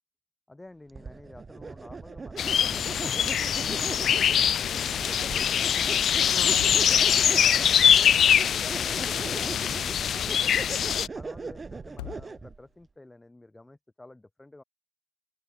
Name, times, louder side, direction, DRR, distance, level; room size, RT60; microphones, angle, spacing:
voice 1, 0.5-4.9 5.3-10.7 11.1-14.6, left 2 dB, 10° left, 4.1 m, -50 dB
sound 1, 0.9-12.6, right 4 dB, 25° right, 1.3 m, -39 dB
sound 2, 2.4-11.1, left 9 dB, 45° left, 0.5 m, -23 dB
sound 3, 11.8-12.8, left 33 dB, 70° left, 1.3 m, -45 dB
open air
hypercardioid pair, 75°, 0 cm